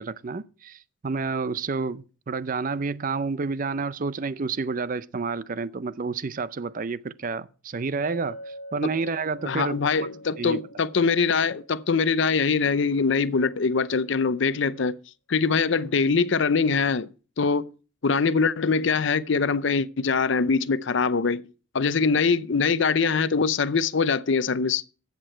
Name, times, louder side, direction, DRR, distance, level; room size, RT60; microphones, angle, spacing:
voice 1, 0.0-9.8 10.4-10.6, right 4 dB, 40° right, 0.5 m, -30 dB
Chink clink, 8.0-12.5, equal, 30° left, 2.5 m, -44 dB
voice 2, 9.4-15.0 15.3-17.1 17.4-17.7 18.0-21.4 21.7-24.8, left 5 dB, 60° left, 0.6 m, -23 dB
14.0 x 8.3 x 4.4 m
head